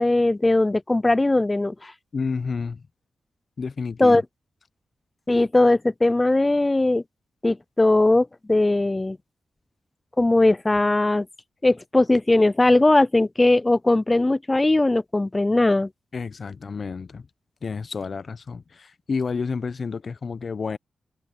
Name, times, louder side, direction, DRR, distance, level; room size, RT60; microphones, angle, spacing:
voice 1, 0.0-1.9 4.0-4.2 5.3-7.0 7.4-9.2 10.2-11.3 11.6-15.9, left 2 dB, 25° left, 0.4 m, -19 dB
voice 2, 2.1-2.9 3.6-4.2 16.1-17.3 17.6-20.8, left 5 dB, 55° left, 0.7 m, -30 dB
open air
cardioid pair, 55°, 0 cm